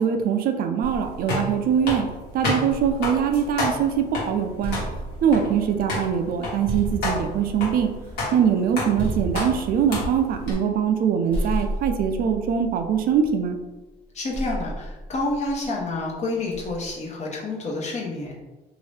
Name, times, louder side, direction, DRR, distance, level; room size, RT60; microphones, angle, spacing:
voice 1, 0.0-2.1 2.3-4.8 5.2-7.9 8.3-13.6, right 7 dB, 60° right, 5 dB, 0.4 m, -22 dB
sound 1, 0.8-10.5, left 2 dB, 90° left, 1.4 m, -31 dB
sound 2, 2.7-4.0 4.4-11.0 11.3-13.6 14.3-15.8 16.5-17.0, right 1 dB, 10° left, 1.1 m, -34 dB
voice 2, 14.1-18.3, left 2 dB, 40° left, -2 dB, 0.9 m, -29 dB
2.8 x 2.6 x 3.2 m, 1.1 s
cardioid pair, 110°, 17 cm